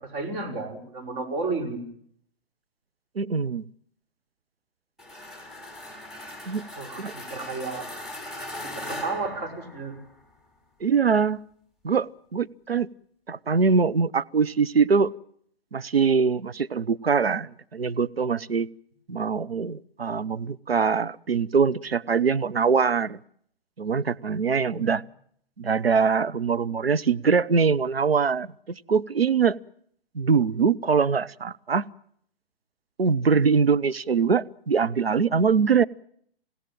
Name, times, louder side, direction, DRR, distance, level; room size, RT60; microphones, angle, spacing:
voice 1, 0.0-1.8 6.8-7.9 8.7-10.0 24.5-24.9, right 3 dB, 25° right, 3 dB, 5.3 m, -32 dB
voice 2, 3.2-3.7 6.5-6.6 7.0-7.1 10.8-11.4 11.8-12.9 13.3-15.1 15.7-18.7 19.1-23.2 23.8-25.0 25.6-29.6 30.1-31.8 33.0-35.8, right 5 dB, 80° right, 14 dB, 1.0 m, -23 dB
sound 1, 5.0-10.2, left 1 dB, ahead, 3.9 m, -39 dB
28.5 x 16.5 x 9.0 m, 0.67 s
figure-of-eight pair, 125°, 30 cm